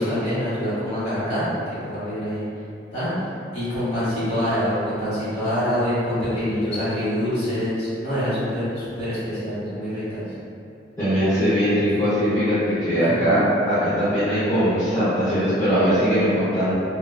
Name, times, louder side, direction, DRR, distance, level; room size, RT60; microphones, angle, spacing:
voice 1, 0.0-1.5 1.8-2.5 2.9-3.1 3.5-10.2 11.9-12.0 13.0-13.2, equal, 35° left, -13 dB, 1.3 m, -25 dB
voice 2, 11.0-16.7, equal, 20° left, -17 dB, 0.7 m, -20 dB
2.4 x 2.1 x 2.3 m, 2.6 s
head